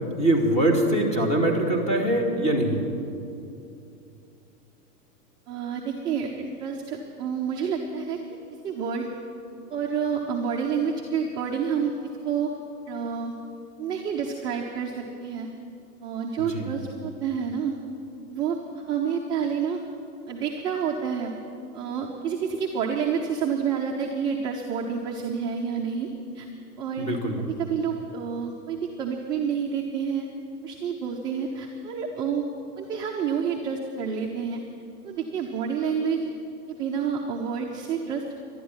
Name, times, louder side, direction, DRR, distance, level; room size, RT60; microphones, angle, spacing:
voice 1, 0.2-2.9 16.5-16.7 27.0-27.4, right 1 dB, 15° left, 2 dB, 2.4 m, -23 dB
voice 2, 5.5-8.2 8.6-9.1 9.7-11.9 12.3-12.5 12.9-13.3 13.8-15.5 16.0-17.7 18.3-19.8 20.3-21.3 21.7-26.1 26.3-26.5 26.8-27.1 27.6-30.3 30.6-32.5 32.8-34.6 35.0-36.3 36.7-38.2, right 6 dB, 10° right, 0 dB, 0.4 m, -29 dB
11.5 x 11.5 x 9.3 m, 2.6 s
hypercardioid pair, 135°, 46 cm